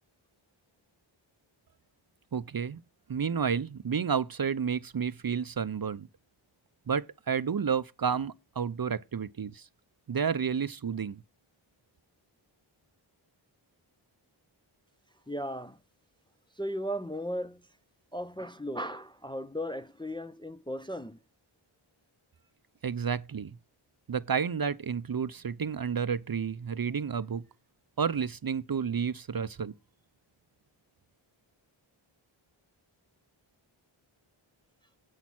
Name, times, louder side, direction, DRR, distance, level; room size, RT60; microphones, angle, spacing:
voice 1, 2.3-2.8 3.1-6.1 6.9-9.7 10.1-11.2 22.8-23.5 24.1-27.4 28.0-29.7, right 6 dB, 45° right, 0.6 m, -31 dB
voice 2, 15.3-15.8 16.6-17.6 18.1-21.2, equal, 10° left, 0.5 m, -36 dB
8.1 x 6.2 x 5.9 m
wide cardioid pair, 55°, 50 cm